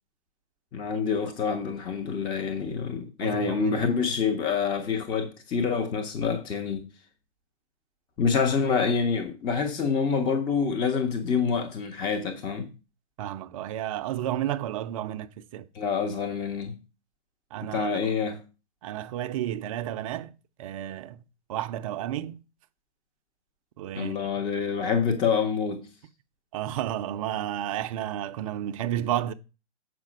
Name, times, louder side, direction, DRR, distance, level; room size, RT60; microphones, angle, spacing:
voice 1, 0.7-6.9 8.2-12.7 15.7-16.8 17.6-18.4 24.0-25.9, left 5 dB, 15° left, 0.6 m, -27 dB
voice 2, 3.2-4.0 13.2-15.7 17.5-17.9 18.8-20.3 20.6-21.2 21.5-22.4 23.8-24.2 26.5-29.3, right 12 dB, 30° right, 0.5 m, -32 dB
7.5 x 5.0 x 6.1 m
hypercardioid pair, 145°, 34 cm